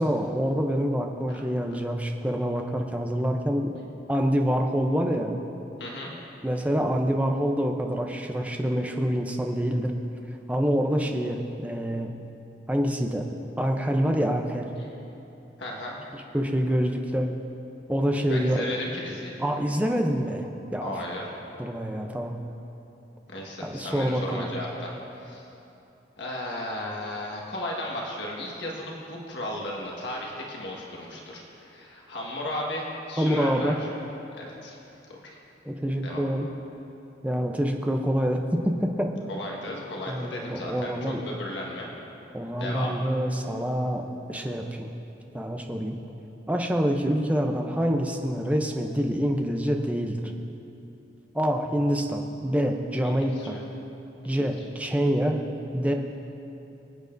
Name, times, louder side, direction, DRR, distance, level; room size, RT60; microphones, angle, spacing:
voice 1, 0.0-3.7 4.1-5.4 6.4-9.9 10.5-12.1 12.7-13.2 13.6-14.7 16.1-17.3 17.9-18.6 19.4-20.9 21.6-22.4 23.6-24.5 33.2-33.8 35.6-36.5 37.2-39.1 40.1-41.2 42.3-44.0 44.3-44.9 45.3-46.0 46.5-50.3 51.3-53.6 54.2-55.4 55.7-55.9, equal, 10° right, 3 dB, 0.6 m, -26 dB
voice 2, 5.8-6.1 15.6-15.9 18.3-19.3 20.8-21.3 23.3-25.5 26.2-33.9 34.3-34.8 35.1-35.4 36.0-36.2 39.3-41.0 41.2-41.9 42.6-42.9 53.0-53.6 54.2-54.3, left 1 dB, 75° left, -2 dB, 1.6 m, -35 dB
23.0 x 8.9 x 2.6 m, 2.9 s
head